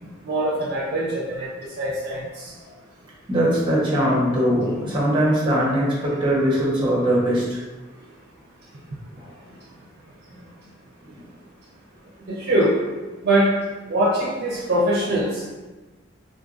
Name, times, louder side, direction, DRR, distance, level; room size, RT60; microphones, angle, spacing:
voice 1, 0.0-2.6 9.5-9.6 10.3-10.5 12.3-12.7 13.2-13.5 13.9-15.5, right 1 dB, 55° right, -6 dB, 0.6 m, -23 dB
voice 2, 3.3-7.7 9.2-9.3 11.0-11.2, equal, 25° right, -5 dB, 0.9 m, -21 dB
3.7 x 2.5 x 2.4 m, 1.2 s
head